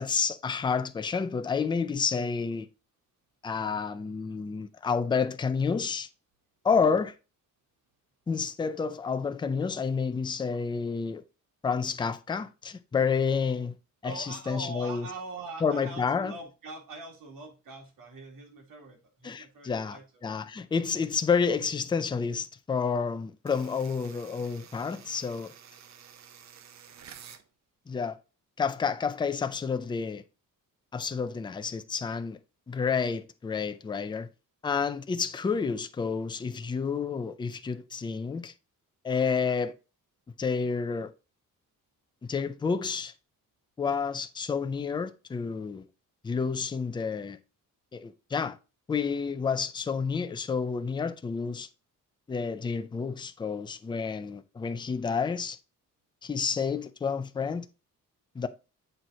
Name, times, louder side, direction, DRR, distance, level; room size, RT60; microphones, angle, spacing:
voice 1, 0.0-2.7 3.4-6.1 6.6-7.1 8.3-11.2 11.6-13.7 14.0-15.1 15.6-16.3 19.2-20.0 20.2-25.5 27.9-28.2 28.6-30.2 30.9-32.4 32.7-34.3 34.6-38.5 39.0-39.7 40.4-41.1 42.3-43.1 43.8-45.9 46.2-47.4 47.9-48.6 48.9-51.7 52.3-55.6 56.2-57.7 58.4-58.5, left 5 dB, 15° left, 0.4 m, -29 dB
voice 2, 14.0-20.2, right 3 dB, 90° right, 2.5 m, -43 dB
sound 1, 23.5-27.5, right 8 dB, 55° right, 0.7 m, -51 dB
7.8 x 4.5 x 3.9 m
wide cardioid pair, 170°, 33 cm